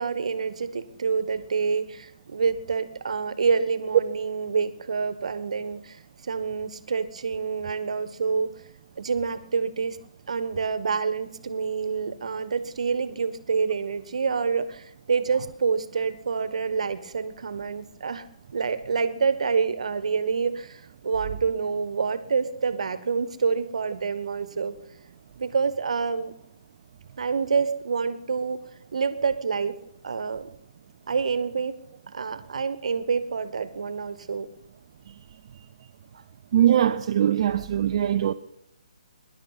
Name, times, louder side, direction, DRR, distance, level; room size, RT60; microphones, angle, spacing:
voice 1, 0.0-8.5 9.0-10.0 10.3-18.3 18.5-24.7 25.4-26.3 27.2-28.6 28.9-29.8 30.0-30.5 31.1-31.8 32.1-34.5, right 5 dB, 65° right, 1.4 m, -27 dB
voice 2, 36.5-38.3, right 10 dB, 45° right, 0.6 m, -21 dB
23.0 x 11.5 x 4.1 m
figure-of-eight pair, 140°, 4 cm